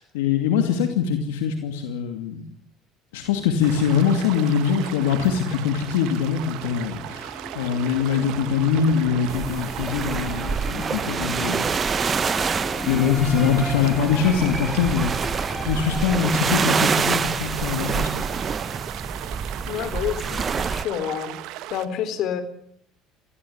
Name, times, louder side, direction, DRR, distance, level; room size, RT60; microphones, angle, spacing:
voice 1, 0.0-2.5 3.1-11.7 12.8-15.3 15.7-18.2, left 7 dB, 90° left, 6 dB, 2.5 m, -23 dB
sound 1, 3.3-16.4, equal, ahead, 2.1 m, -36 dB
sound 2, 3.6-21.9, right 14 dB, 70° right, 1.5 m, -37 dB
sound 3, 9.3-20.8, right 6 dB, 35° right, 1.1 m, -27 dB
voice 2, 19.7-21.4 21.7-22.4, left 9 dB, 65° left, 11 dB, 3.9 m, -28 dB
21.0 x 15.5 x 9.9 m, 0.67 s
supercardioid pair, 85°, 0 cm